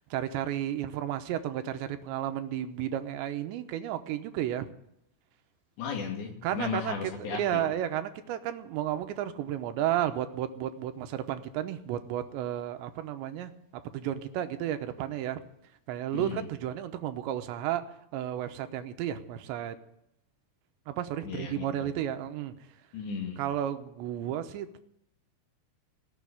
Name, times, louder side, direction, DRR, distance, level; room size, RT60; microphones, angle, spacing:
voice 1, 0.0-4.7 6.4-13.5 13.9-15.4 15.9-17.8 18.1-19.8 20.9-22.5 23.4-24.8, right 11 dB, 85° right, 8 dB, 3.2 m, -32 dB
voice 2, 5.8-7.6 16.1-16.5 21.2-21.9 22.9-23.4, left 6 dB, 75° left, 2 dB, 4.6 m, -35 dB
18.5 x 7.2 x 9.9 m, 0.78 s
omnidirectional pair, 5.1 m